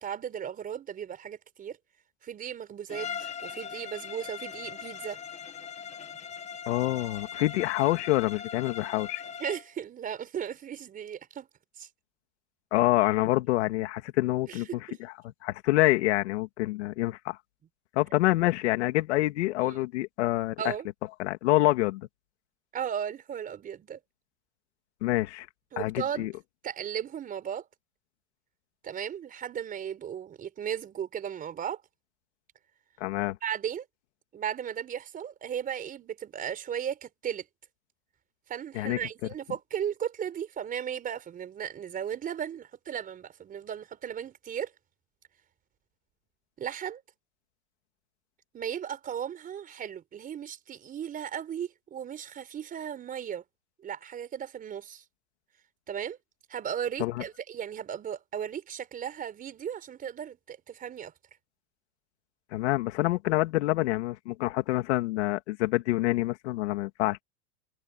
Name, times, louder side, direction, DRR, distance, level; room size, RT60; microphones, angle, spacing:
voice 1, 0.0-1.8 2.2-5.2 9.4-11.5 11.8-11.9 14.5-15.0 19.6-19.8 20.6-20.9 22.7-24.0 25.7-26.3 26.6-27.7 28.8-31.8 33.4-33.8 34.3-37.4 38.5-44.7 46.6-47.0 48.5-53.4 53.8-55.0 55.9-56.2 56.5-61.1, right 9 dB, 25° right, 4.8 m, -36 dB
Bowed string instrument, 2.9-9.7, left 7 dB, 20° left, 1.9 m, -40 dB
voice 2, 6.7-9.2 12.7-14.8 15.4-17.4 17.9-20.5 21.2-22.1 25.0-25.5 25.8-26.3 33.0-33.4 38.7-39.0 57.0-57.2 62.5-67.2, left 18 dB, 70° left, 2.8 m, -26 dB
supercardioid pair, 145°, 35 cm